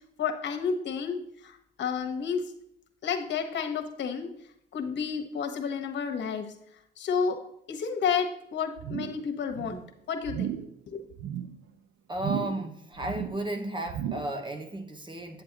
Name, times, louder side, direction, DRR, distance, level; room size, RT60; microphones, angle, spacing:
voice 1, 0.2-2.4 3.0-4.3 4.7-6.5 7.0-7.4 7.7-9.8 10.1-10.5 10.9-11.0, left 6 dB, 65° left, 5 dB, 1.3 m, -31 dB
sound 1, 8.8-9.3 9.5-9.9 10.2-10.7 11.1-11.6 12.1-12.7 13.0-13.5 13.9-14.4 14.8-14.9, right 10 dB, 90° right, 0.6 m, -35 dB
voice 2, 12.1-15.4, right 1 dB, 25° right, 7 dB, 1.1 m, -34 dB
8.8 x 7.4 x 3.0 m, 0.75 s
cardioid pair, 90°, 20 cm